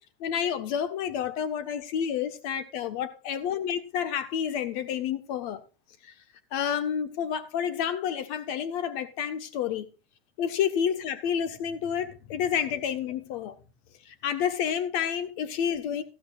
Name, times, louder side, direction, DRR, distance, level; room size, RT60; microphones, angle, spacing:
voice 1, 0.2-5.6 6.0-6.1 6.5-9.9 10.4-13.6 14.2-16.0, left 8 dB, 50° left, 1.4 m, -29 dB
14.0 x 12.5 x 2.5 m
supercardioid pair, 140°, 30 cm